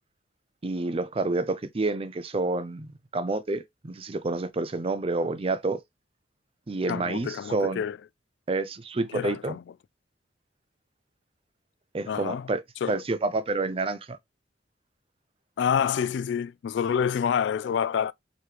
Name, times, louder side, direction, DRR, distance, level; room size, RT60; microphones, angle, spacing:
voice 1, 0.6-5.8 6.7-7.8 8.5-9.6 11.9-12.6 12.9-14.2, right 3 dB, 30° right, 0.5 m, -29 dB
voice 2, 6.9-8.0 9.1-9.6 12.1-12.5 12.8-13.0 15.6-18.1, left 7 dB, 70° left, 0.3 m, -27 dB
4.8 x 3.1 x 3.2 m
head